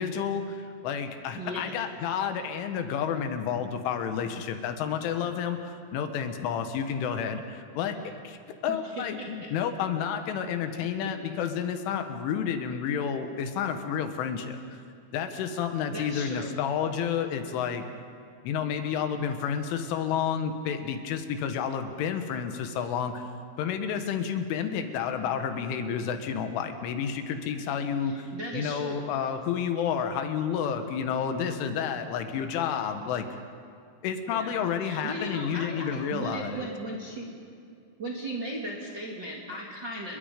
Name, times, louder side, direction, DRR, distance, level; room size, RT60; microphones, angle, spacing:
voice 1, 0.0-8.4 8.6-14.8 15.1-17.8 18.4-23.3 23.6-28.2 28.5-33.3 34.0-36.7, left 7 dB, 80° left, 7 dB, 3.8 m, -30 dB
voice 2, 1.4-1.7 8.7-9.3 15.9-16.5 28.0-29.0 34.2-34.5 34.8-37.4 38.0-40.2, right 1 dB, 35° right, -3 dB, 1.9 m, -37 dB
29.5 x 22.0 x 5.2 m, 2.3 s
omnidirectional pair, 5.6 m